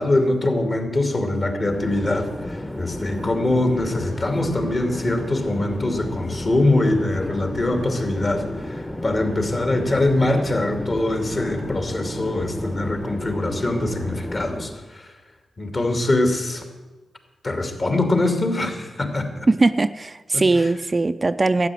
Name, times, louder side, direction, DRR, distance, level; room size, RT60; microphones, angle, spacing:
voice 1, 0.0-15.1 15.6-16.6 17.4-19.5 20.3-20.7, left 2 dB, 45° left, 5 dB, 2.6 m, -23 dB
Chatter / Fixed-wing aircraft airplane, 1.4-14.9, left 1 dB, 20° left, 1.2 m, -32 dB
voice 2, 19.5-21.7, right 3 dB, 35° right, 11 dB, 0.5 m, -20 dB
12.0 x 8.9 x 7.7 m, 1.2 s
supercardioid pair, 40°, 0 cm